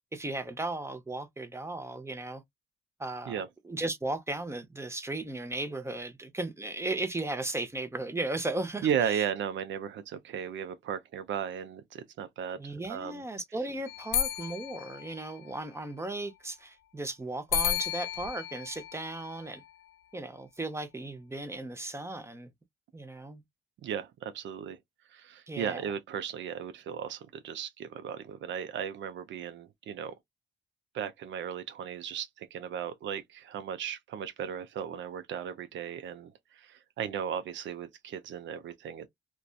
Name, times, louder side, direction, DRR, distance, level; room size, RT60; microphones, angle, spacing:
voice 1, 0.1-2.4 3.0-9.2 12.6-19.6 20.1-22.5 22.9-23.4 25.5-25.8, right 2 dB, 15° right, 0.7 m, -36 dB
voice 2, 8.8-13.2 23.8-24.8 25.1-30.1 30.9-39.1, right 8 dB, 70° right, 0.5 m, -36 dB
sound 1, 13.9-15.8 17.5-19.9, left 9 dB, 80° left, 0.5 m, -34 dB
2.5 x 2.2 x 2.2 m
cardioid pair, 90°, 20 cm